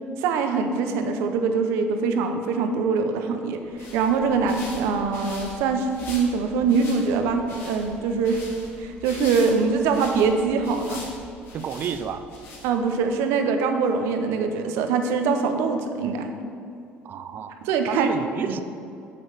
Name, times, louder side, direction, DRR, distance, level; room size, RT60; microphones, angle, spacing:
voice 1, 0.2-3.6 3.9-8.4 8.8-11.0 12.6-16.3 17.6-18.1 18.5-18.6, right 5 dB, 80° right, 6 dB, 0.8 m, -23 dB
sound 1, 3.5-13.0, left 2 dB, 65° left, 2.2 m, -42 dB
voice 2, 11.5-12.3 17.0-17.6 17.9-18.6, right 7 dB, 50° right, 11 dB, 0.5 m, -31 dB
7.1 x 6.9 x 5.0 m, 2.5 s
cardioid pair, 120°, 4 cm